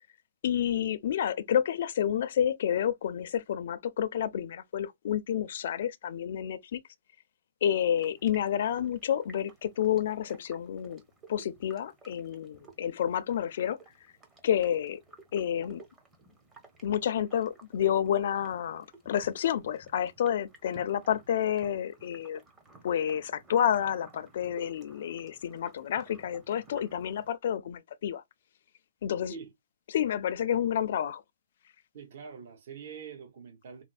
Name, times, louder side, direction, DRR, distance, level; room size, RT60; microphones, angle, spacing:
voice 1, 0.4-6.8 7.6-11.0 11.3-13.8 14.4-15.0 15.3-15.8 16.8-22.4 22.8-28.2 29.0-29.3 29.9-31.2, left 9 dB, 60° left, 0.4 m, -29 dB
sound 1, 7.9-27.3, right 3 dB, 15° right, 0.7 m, -56 dB
voice 2, 31.9-33.8, right 6 dB, 55° right, 0.9 m, -44 dB
4.1 x 2.0 x 2.4 m
hypercardioid pair, 160°, 0 cm